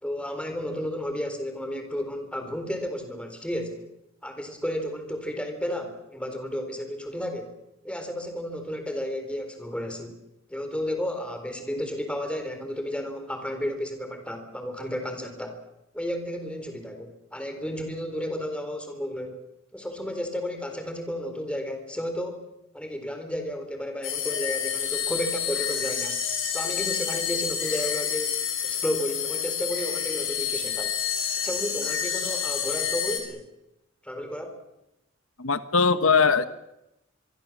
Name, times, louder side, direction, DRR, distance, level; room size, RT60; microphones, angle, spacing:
voice 1, 0.0-3.9 4.2-7.5 7.8-10.1 10.5-15.6 15.9-19.4 19.7-22.4 22.7-26.2 26.5-28.3 28.6-31.0 31.4-33.5 34.0-34.6, equal, 5° left, 6 dB, 4.0 m, -32 dB
sound 1, 24.0-33.2, left 8 dB, 70° left, 6.6 m, -29 dB
voice 2, 35.4-36.5, left 5 dB, 90° left, 12 dB, 1.2 m, -20 dB
25.0 x 23.5 x 7.4 m, 0.88 s
head